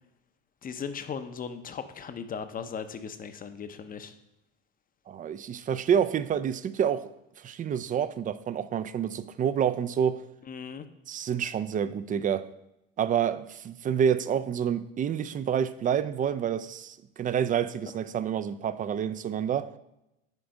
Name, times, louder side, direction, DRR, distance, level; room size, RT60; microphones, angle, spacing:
voice 1, 0.6-4.1 10.5-10.9, left 6 dB, 30° left, 10 dB, 0.7 m, -37 dB
voice 2, 5.1-7.0 7.4-10.2 11.1-12.5 13.0-19.7, right 8 dB, 25° right, 14 dB, 0.4 m, -28 dB
9.0 x 3.4 x 5.2 m, 0.87 s
supercardioid pair, 90°, 30 cm